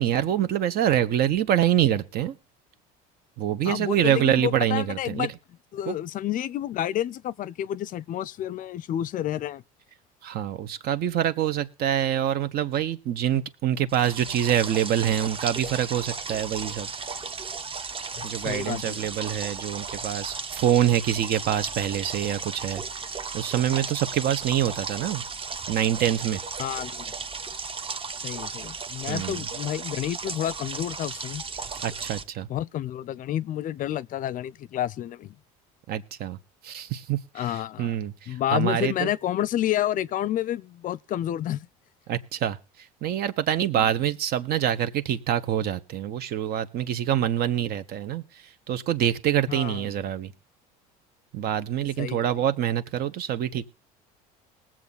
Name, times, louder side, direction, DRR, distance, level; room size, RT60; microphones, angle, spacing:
voice 1, 0.0-2.3 3.4-5.3 5.9-6.0 10.2-16.9 18.2-22.8 23.3-25.2 25.7-26.4 29.1-29.4 31.8-32.5 35.9-36.4 36.6-37.2 37.5-39.1 42.1-42.6 43.0-48.2 48.7-50.3 51.3-53.7, right 10 dB, 55° right, 1.4 m, -25 dB
voice 2, 3.6-5.3 5.7-9.6 18.2-19.1 26.6-27.1 28.2-31.4 32.5-35.4 37.3-37.9 38.3-41.7 43.8-43.9 49.5-49.9 52.0-52.3, left 12 dB, 45° left, 0.6 m, -30 dB
sound 1, 13.9-32.2, right 5 dB, 30° right, 1.2 m, -35 dB
20.0 x 7.7 x 4.0 m
supercardioid pair, 90°, 19 cm